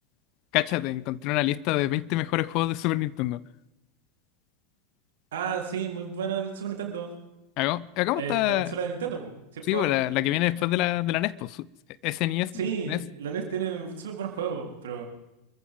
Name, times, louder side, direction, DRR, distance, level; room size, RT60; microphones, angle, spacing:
voice 1, 0.5-3.4 7.6-8.7 9.7-11.7 12.0-12.5 12.9-13.0, left 17 dB, 50° left, 21 dB, 0.6 m, -26 dB
voice 2, 5.3-7.1 8.2-9.9 12.5-15.0, right 7 dB, 65° right, 1 dB, 3.9 m, -32 dB
26.5 x 14.5 x 3.8 m, 0.94 s
figure-of-eight pair, 85°, 0 cm